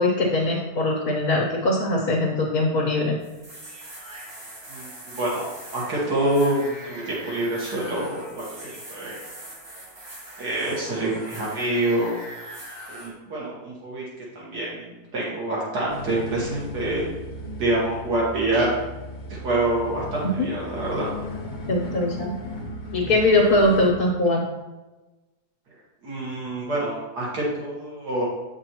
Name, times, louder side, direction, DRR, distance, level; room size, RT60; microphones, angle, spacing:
voice 1, 0.0-3.2 20.2-20.5 21.7-22.3 22.9-24.5, left 2 dB, 65° left, -2 dB, 1.5 m, -21 dB
sound 1, 3.2-13.1, right 1 dB, 60° right, 2.3 m, -41 dB
voice 2, 4.7-5.4 5.7-9.2 10.4-12.2 12.9-14.0 14.4-17.1 17.6-18.7 19.3-21.1 26.0-28.2, right 1 dB, 80° right, -4 dB, 2.0 m, -26 dB
sound 2, 15.9-23.9, left 1 dB, 35° left, 0.9 m, -36 dB
8.1 x 6.0 x 2.9 m, 1.1 s
omnidirectional pair, 1.7 m